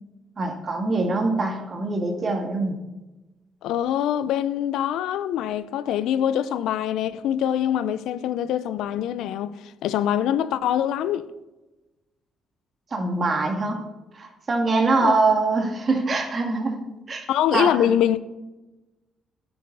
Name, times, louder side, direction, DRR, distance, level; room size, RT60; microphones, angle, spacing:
voice 1, 0.4-2.8 12.9-13.8 14.1-16.8 17.1-17.3 17.5-17.9, right 3 dB, 40° right, 2.1 m, -23 dB
voice 2, 3.6-11.3 15.0-15.1 17.3-18.2, left 10 dB, 85° left, 0.5 m, -24 dB
10.5 x 8.7 x 4.7 m
cardioid pair, 90°, 0 cm